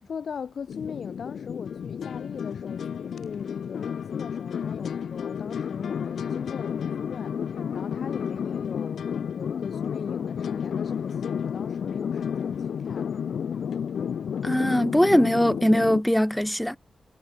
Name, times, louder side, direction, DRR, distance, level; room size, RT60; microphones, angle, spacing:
voice 1, 0.0-2.9 3.2-13.1, left 6 dB, 60° left, 1.6 m, -39 dB
sound 1, 0.7-16.0, left 7 dB, 80° left, 0.9 m, -31 dB
voice 2, 14.4-16.8, equal, 5° left, 0.4 m, -21 dB
wide cardioid pair, 180°, 0 cm